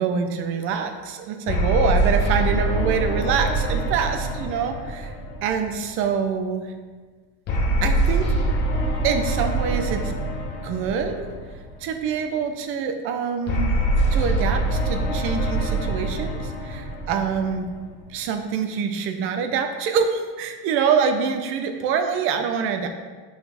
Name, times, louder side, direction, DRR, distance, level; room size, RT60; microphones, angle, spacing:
voice 1, 0.0-5.1 5.4-6.7 7.8-8.3 9.0-10.2 10.6-11.3 11.8-13.7 14.1-17.7 18.1-22.9, right 6 dB, 35° right, 7 dB, 0.5 m, -25 dB
sound 1, 1.5-6.0 7.5-11.8 13.5-18.0, right 1 dB, 25° left, 0.8 m, -24 dB
6.4 x 6.0 x 3.3 m, 1.4 s
cardioid pair, 180°, 39 cm